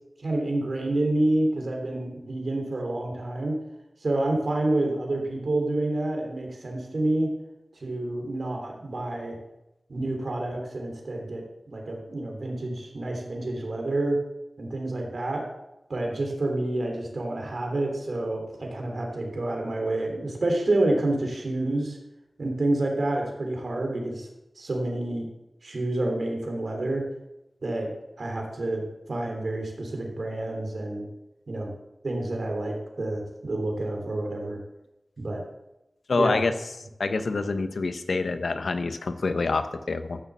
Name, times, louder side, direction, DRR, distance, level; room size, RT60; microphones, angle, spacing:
voice 1, 0.2-3.6 4.0-7.3 7.8-9.4 9.9-14.2 14.6-15.4 15.9-22.0 22.4-24.3 24.6-25.2 25.6-27.0 27.6-27.9 28.2-31.1 31.5-31.7 32.0-34.6 35.2-35.4 36.1-36.4, right 2 dB, 75° right, 1 dB, 3.4 m, -28 dB
voice 2, 36.1-36.5 37.0-40.2, left 3 dB, 90° left, 9 dB, 0.9 m, -26 dB
14.5 x 6.9 x 7.3 m, 0.93 s
wide cardioid pair, 50°, 0 cm